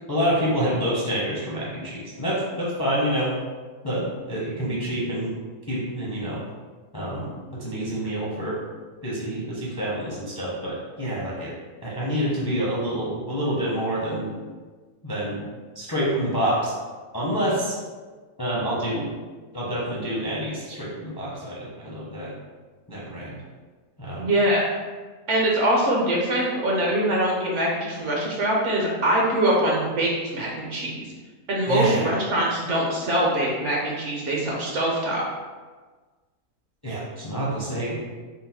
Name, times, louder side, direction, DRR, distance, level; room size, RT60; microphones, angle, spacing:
voice 1, 0.0-3.3 3.8-5.3 5.7-6.4 6.9-7.3 7.6-8.6 9.0-11.5 11.8-14.3 15.0-15.4 15.7-16.7 17.1-17.8 18.4-19.1 19.5-22.3 22.9-23.4 24.0-24.3 31.7-32.1 36.8-38.0, equal, 25° left, -7 dB, 0.5 m, -27 dB
voice 2, 24.2-24.6 25.3-31.0 31.5-35.2, right 1 dB, 60° right, -3 dB, 0.9 m, -23 dB
3.9 x 2.1 x 4.1 m, 1.4 s
omnidirectional pair, 1.6 m